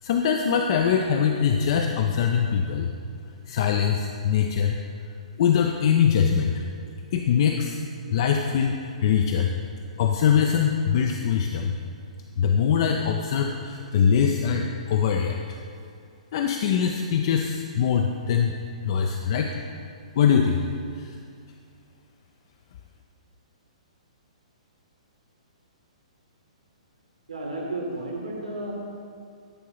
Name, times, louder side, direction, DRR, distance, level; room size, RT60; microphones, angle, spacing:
voice 1, 0.0-2.9 3.5-4.8 5.4-6.6 7.1-7.8 8.1-9.5 10.0-11.8 12.4-15.6 16.3-18.5 18.8-19.6 20.2-20.7 20.9-21.1, left 7 dB, 45° left, 3 dB, 0.4 m, -22 dB
voice 2, 27.3-28.7, right 2 dB, 70° right, -1 dB, 1.6 m, -32 dB
9.9 x 4.6 x 4.0 m, 2.3 s
figure-of-eight pair, 115°, 4 cm